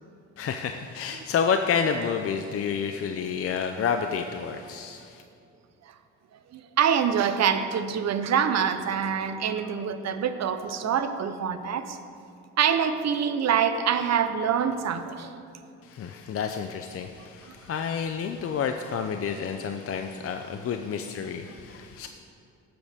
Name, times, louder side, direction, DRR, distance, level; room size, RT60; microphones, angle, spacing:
voice 1, 0.4-5.2 15.8-22.1, left 6 dB, 50° left, 6 dB, 0.6 m, -29 dB
voice 2, 6.5-12.0 12.6-15.4 17.5-17.6, right 7 dB, 60° right, 9 dB, 0.9 m, -25 dB
18.0 x 7.8 x 3.6 m, 2.5 s
cardioid pair, 90°, 30 cm